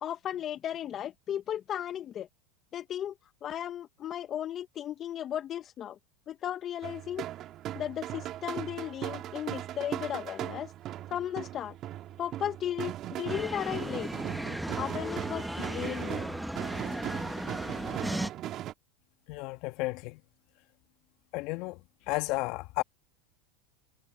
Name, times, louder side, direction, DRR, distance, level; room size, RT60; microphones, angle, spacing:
voice 1, 0.0-2.3 2.7-3.1 3.4-6.0 6.3-7.2 7.7-10.7 11.1-11.7 12.2-14.1 14.8-16.3, left 10 dB, 35° left, 1.1 m, -35 dB
sound 1, 6.8-18.7, right 13 dB, 45° right, 2.7 m, -38 dB
sound 2, 13.3-18.3, equal, ahead, 1.2 m, -36 dB
voice 2, 19.3-20.2 21.3-21.8 22.1-22.8, left 22 dB, 55° left, 1.6 m, -32 dB
hypercardioid pair, 105°, 0 cm